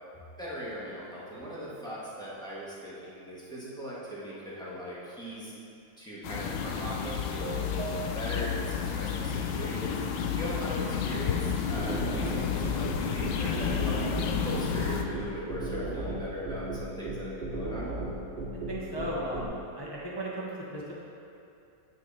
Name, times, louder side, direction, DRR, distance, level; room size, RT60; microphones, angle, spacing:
voice 1, 0.4-5.5 6.0-10.0 10.3-14.0 14.4-17.9, equal, ahead, -9 dB, 1.5 m, -39 dB
sound 1, 6.2-15.0, left 7 dB, 85° left, 1.4 m, -31 dB
sound 2, 6.6-8.7, right 5 dB, 80° right, 1.4 m, -41 dB
sound 3, 11.8-19.5, right 2 dB, 30° right, 2.3 m, -35 dB
voice 2, 18.7-20.9, equal, 40° left, -5 dB, 0.3 m, -36 dB
9.2 x 6.0 x 4.2 m, 2.6 s
omnidirectional pair, 2.1 m